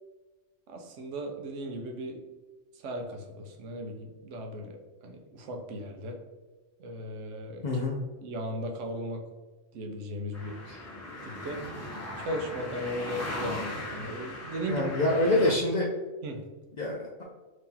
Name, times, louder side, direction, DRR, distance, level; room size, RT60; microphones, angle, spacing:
voice 1, 0.7-2.2 2.8-4.8 5.0-6.2 6.8-7.8 8.2-9.2 9.7-10.6 11.2-11.6 12.2-14.9 16.2-16.4, equal, 75° right, 3 dB, 1.0 m, -37 dB
voice 2, 7.6-8.0 10.7-10.8 14.7-15.9 16.8-17.2, left 1 dB, 65° left, -3 dB, 0.4 m, -26 dB
sound 1, 10.3-15.5, left 1 dB, 15° left, 0.6 m, -38 dB
3.0 x 2.8 x 3.7 m, 1.2 s
omnidirectional pair, 1.3 m